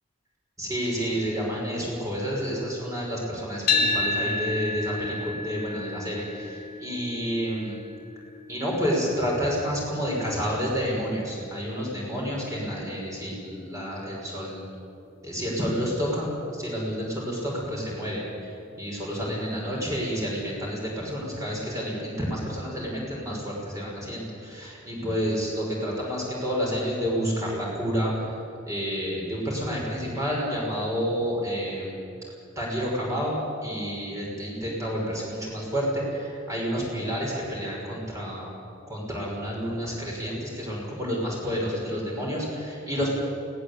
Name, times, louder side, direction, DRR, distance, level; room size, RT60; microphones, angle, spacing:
voice 1, 0.6-7.8 8.5-14.6 15.2-28.3 28.7-32.0 32.6-38.5 38.9-43.2, equal, 15° right, -3 dB, 6.0 m, -29 dB
sound 1, 3.7-11.9, left 3 dB, 45° left, 1.9 m, -31 dB
20.5 x 18.0 x 8.5 m, 2.7 s
head